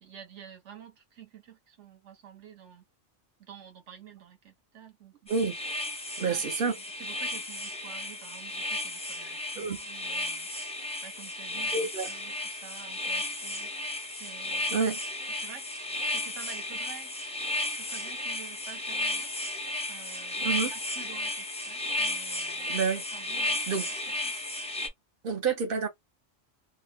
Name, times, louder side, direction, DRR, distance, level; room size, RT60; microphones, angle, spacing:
voice 1, 0.0-2.8 3.4-5.1 6.2-10.6 11.0-13.7 14.1-14.7 15.4-17.1 17.8-19.3 19.9-20.4 20.7-22.7 23.1-23.6 24.2-24.4, right 8 dB, 70° right, 1.1 m, -49 dB
sound 1, 5.3-24.9, left 2 dB, 10° left, 0.4 m, -34 dB
voice 2, 6.2-6.7 9.6-9.8 11.7-12.1 14.7-15.0 20.4-20.7 22.7-23.0 23.7-23.9 25.2-25.9, right 5 dB, 55° right, 0.8 m, -28 dB
2.6 x 2.1 x 3.3 m
omnidirectional pair, 1.3 m